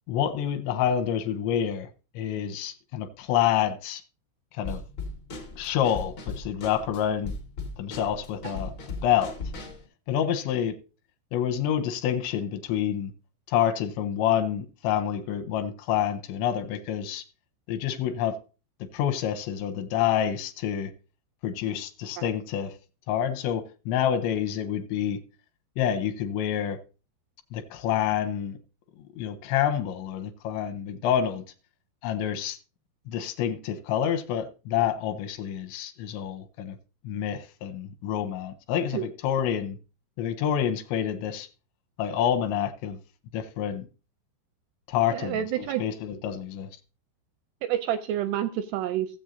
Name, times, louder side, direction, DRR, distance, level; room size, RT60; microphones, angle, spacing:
voice 1, 0.1-1.9 2.2-4.0 4.5-4.8 5.6-7.3 7.8-8.7 9.0-9.4 10.1-10.8 11.3-13.1 13.5-17.2 17.7-18.4 18.8-20.9 21.4-22.7 23.1-25.2 25.8-26.8 27.5-28.6 29.2-31.4 32.0-32.6 33.1-36.8 37.0-39.8 40.2-41.5 42.0-43.0 43.3-43.9 44.9-46.7, left 9 dB, 85° left, 2.9 m, -28 dB
Drum kit / Snare drum, 4.6-9.9, left 3 dB, 60° left, 1.2 m, -37 dB
voice 2, 45.1-45.8 47.6-49.1, right 11 dB, 85° right, 2.3 m, -29 dB
16.0 x 7.6 x 2.6 m
omnidirectional pair, 5.4 m